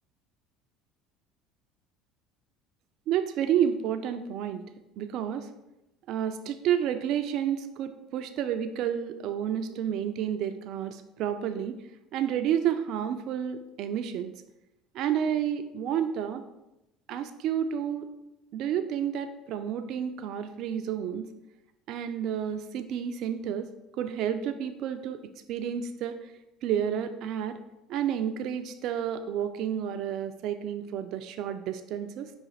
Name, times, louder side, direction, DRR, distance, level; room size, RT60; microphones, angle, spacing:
voice 1, 3.1-4.6 5.0-5.5 6.1-11.7 12.1-14.3 14.9-16.4 17.1-18.1 18.5-21.3 21.9-23.7 24.0-25.2 25.5-26.2 26.6-27.6 27.9-32.3, right 9 dB, 60° right, 8 dB, 0.3 m, -30 dB
4.9 x 2.5 x 4.0 m, 0.92 s
hypercardioid pair, 75°, 0 cm